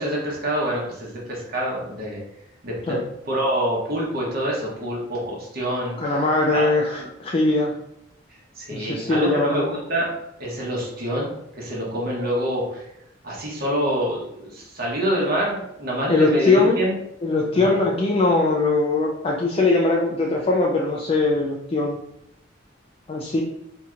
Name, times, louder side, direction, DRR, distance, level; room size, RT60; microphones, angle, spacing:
voice 1, 0.0-2.2 2.6-3.0 3.2-6.2 6.5-7.1 8.3-10.1 10.4-11.3 11.5-12.9 13.2-16.9 17.5-17.7, equal, 55° right, -4 dB, 1.0 m, -26 dB
voice 2, 6.0-6.9 7.2-7.8 8.7-9.7 15.2-15.3 16.1-16.8 17.2-22.0 23.1-23.4, left 3 dB, 30° left, -2 dB, 0.4 m, -21 dB
4.3 x 2.9 x 2.4 m, 0.81 s
head